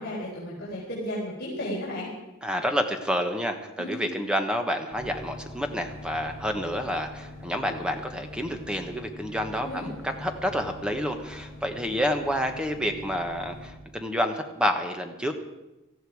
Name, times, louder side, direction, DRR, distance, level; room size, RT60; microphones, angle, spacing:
voice 1, 0.0-2.1 3.8-4.1 9.6-9.9, equal, 50° left, -7 dB, 4.1 m, -34 dB
voice 2, 2.4-15.3, equal, 5° right, 5 dB, 1.2 m, -29 dB
sound 1, 4.9-13.7, left 1 dB, 35° left, 7.0 m, -43 dB
18.5 x 14.0 x 4.8 m, 1.0 s
head